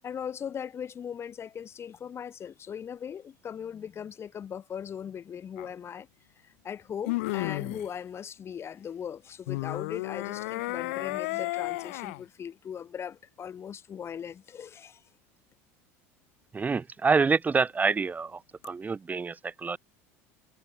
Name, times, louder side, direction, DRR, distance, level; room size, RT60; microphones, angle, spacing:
voice 1, 0.0-6.1 6.4-15.0, left 8 dB, 35° left, 1.5 m, -39 dB
sound 1, 5.6-5.7 7.1-7.9 9.5-12.2 18.6-18.7, left 22 dB, 70° left, 1.6 m, -32 dB
voice 2, 16.5-19.8, right 4 dB, 20° right, 1.5 m, -27 dB
hypercardioid pair, 80°, 8 cm